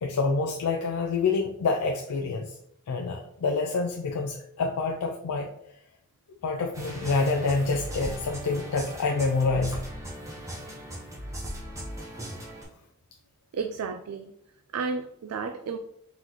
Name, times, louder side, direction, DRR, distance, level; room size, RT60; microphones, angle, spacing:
voice 1, 0.0-2.6 2.9-5.5 6.4-9.8, left 4 dB, 90° left, 3 dB, 0.4 m, -27 dB
sound 1, 6.7-12.6, equal, 15° right, 0.8 m, -38 dB
voice 2, 13.5-14.3 14.7-15.8, right 5 dB, 80° right, 7 dB, 0.3 m, -32 dB
4.0 x 3.9 x 3.0 m, 0.75 s
head